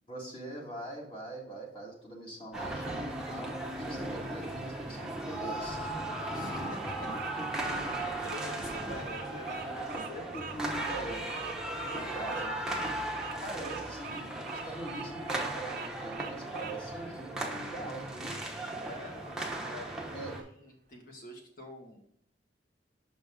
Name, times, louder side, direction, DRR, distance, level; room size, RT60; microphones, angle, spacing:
voice 1, 0.1-5.9 7.0-8.1 9.8-11.3 12.1-13.0 13.4-18.4 20.1-20.3, right 1 dB, 30° left, -1 dB, 1.7 m, -42 dB
sound 1, 2.5-20.4, right 1 dB, 5° right, 0.8 m, -37 dB
Bird vocalization bird call bird song, 5.9-16.8, right 5 dB, 50° right, 0.7 m, -43 dB
voice 2, 6.3-6.8 7.5-10.5 11.6-12.2 18.7-22.0, left 1 dB, 50° left, 1 dB, 1.5 m, -47 dB
6.1 x 5.1 x 3.6 m, 0.71 s
head